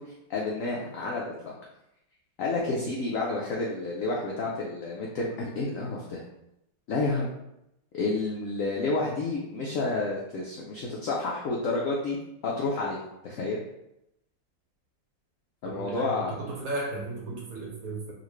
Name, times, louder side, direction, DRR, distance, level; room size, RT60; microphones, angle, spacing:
voice 1, 0.0-1.5 2.4-6.2 6.9-7.3 7.9-12.2 12.4-13.0 13.2-13.6 15.6-16.5, left 3 dB, 75° left, -3 dB, 0.7 m, -30 dB
voice 2, 15.7-18.1, right 2 dB, 65° right, -2 dB, 1.0 m, -35 dB
3.8 x 2.5 x 3.1 m, 0.84 s
omnidirectional pair, 2.0 m